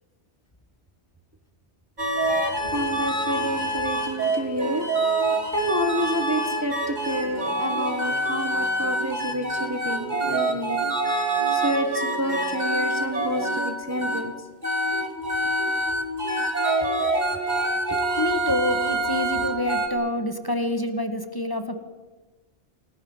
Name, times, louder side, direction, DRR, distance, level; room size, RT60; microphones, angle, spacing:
sound 1, 2.0-14.2 14.6-19.9, right 1 dB, 40° right, 3.2 m, -26 dB
voice 1, 2.2-4.9 5.2-14.3 15.4-15.5 17.9-18.0, equal, 15° right, 6 dB, 1.5 m, -29 dB
voice 2, 18.2-21.8, left 1 dB, 20° left, 7 dB, 1.9 m, -27 dB
29.0 x 18.5 x 7.3 m, 1.2 s
omnidirectional pair, 1.2 m